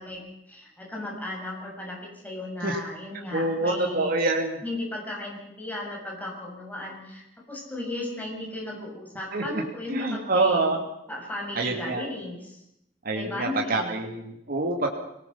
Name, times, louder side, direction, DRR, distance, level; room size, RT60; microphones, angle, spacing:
voice 1, 0.0-4.1 4.6-10.7 11.1-12.6 13.1-13.9, left 1 dB, 10° left, -2 dB, 7.0 m, -35 dB
voice 2, 3.3-4.6 9.3-9.6 9.9-10.8 11.5-12.0 13.0-14.9, right 2 dB, 50° right, 1 dB, 2.6 m, -26 dB
24.5 x 19.5 x 5.8 m, 0.80 s
head